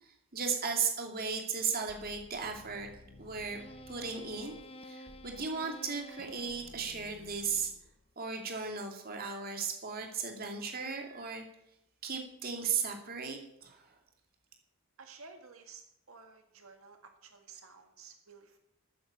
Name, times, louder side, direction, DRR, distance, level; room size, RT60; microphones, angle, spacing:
voice 1, 0.0-2.9 3.2-3.6 3.9-4.5 4.8-7.7 8.2-11.4 12.0-13.9, right 5 dB, 45° right, 3 dB, 2.5 m, -36 dB
sound 1, 1.9-8.1, left 1 dB, 30° left, 0.8 m, -51 dB
voice 2, 15.0-18.6, right 5 dB, 80° right, 5 dB, 1.8 m, -53 dB
13.5 x 9.4 x 8.8 m, 0.80 s
head